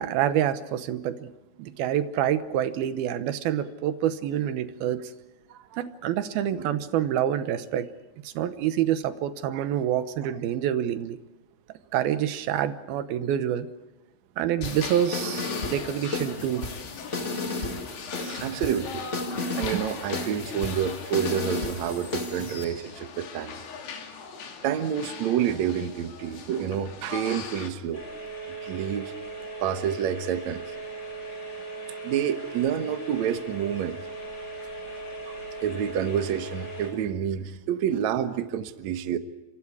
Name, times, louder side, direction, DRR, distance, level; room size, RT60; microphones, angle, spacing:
voice 1, 0.0-1.3 1.6-5.1 5.8-7.9 8.2-11.2 11.9-13.7 14.4-16.7 18.2-18.4, right 10 dB, 70° right, 11 dB, 2.5 m, -27 dB
sound 1, 14.6-27.7, left 6 dB, 85° left, 5.2 m, -40 dB
sound 2, 14.6-22.6, left 2 dB, 45° left, 0.9 m, -34 dB
voice 2, 18.3-19.1 19.4-23.6 24.6-28.0 28.6-29.1 29.6-30.6 31.9-34.0 35.3-39.2, right 9 dB, 90° right, 9 dB, 1.6 m, -28 dB
sound 3, 27.9-36.9, right 3 dB, 20° left, 7.8 m, -38 dB
30.0 x 25.5 x 4.8 m, 1.1 s
omnidirectional pair, 5.2 m